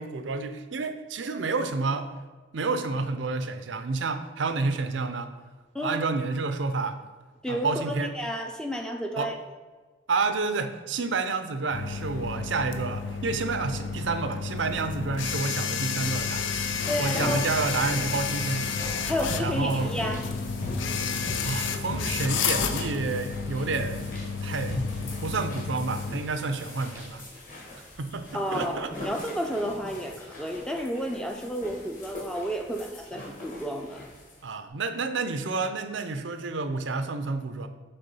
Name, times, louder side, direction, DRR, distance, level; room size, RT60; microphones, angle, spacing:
voice 1, 0.0-2.1 2.5-5.3 5.8-7.0 7.5-8.1 9.2-9.3 10.1-16.5 17.0-18.7 19.2-19.9 21.4-24.0 24.4-24.8 25.2-27.2 28.0-29.1 34.4-37.7, right 4 dB, 80° right, 9 dB, 0.6 m, -29 dB
voice 2, 5.7-6.1 7.4-9.4 16.9-17.5 19.0-20.2 28.3-34.0, equal, 5° left, 3 dB, 0.5 m, -31 dB
sound 1, 11.7-26.1, left 5 dB, 90° left, 0.5 m, -31 dB
sound 2, 16.0-34.4, left 1 dB, 45° left, 1.9 m, -40 dB
6.8 x 3.7 x 5.4 m, 1.3 s
head